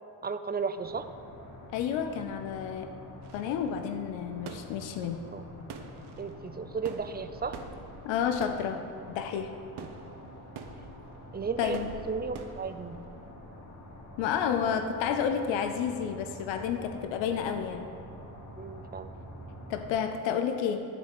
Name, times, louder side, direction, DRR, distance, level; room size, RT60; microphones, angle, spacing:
voice 1, 0.2-1.1 5.3-5.4 6.2-7.6 11.3-11.8 12.1-13.0 18.6-19.1, right 5 dB, 20° right, 10 dB, 0.6 m, -34 dB
sound 1, 0.8-19.9, left 1 dB, 40° left, 2.0 m, -47 dB
voice 2, 1.7-2.9 3.3-5.2 8.0-8.8 9.1-9.5 11.6-11.9 14.2-17.9 19.7-20.9, left 8 dB, 80° left, 7 dB, 0.7 m, -30 dB
sound 2, 3.2-13.3, right 5 dB, 60° right, 1.0 m, -47 dB
11.0 x 4.2 x 7.6 m, 3.0 s
supercardioid pair, 60°, 44 cm